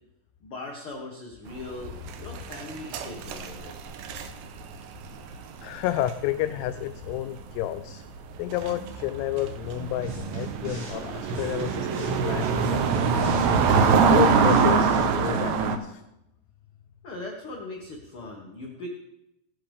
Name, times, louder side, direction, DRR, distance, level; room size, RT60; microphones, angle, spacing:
voice 1, 0.4-3.7 17.0-18.9, left 2 dB, 65° left, 0 dB, 1.3 m, -39 dB
sound 1, 1.5-7.1 7.4-7.6 8.3-15.8, right 5 dB, 75° right, 2.4 m, -24 dB
voice 2, 5.6-8.0 8.4-13.5 14.1-16.0, left 13 dB, 85° left, 10 dB, 2.6 m, -31 dB
sound 2, 10.0-11.0 11.3-15.1, right 1 dB, 55° right, 5.8 m, -37 dB
18.0 x 10.0 x 3.5 m, 0.87 s
omnidirectional pair, 4.8 m